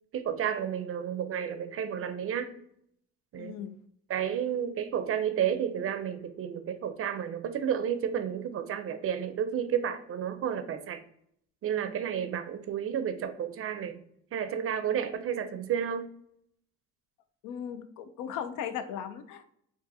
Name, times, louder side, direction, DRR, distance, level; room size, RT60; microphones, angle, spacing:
voice 1, 0.1-2.6 3.3-3.6 4.1-11.0 11.6-14.0 14.3-16.1, right 8 dB, 50° right, 9 dB, 0.4 m, -31 dB
voice 2, 3.4-3.8 17.4-19.5, left 8 dB, 85° left, 10 dB, 0.5 m, -37 dB
3.9 x 2.5 x 2.6 m, 0.70 s
cardioid pair, 90°, 30 cm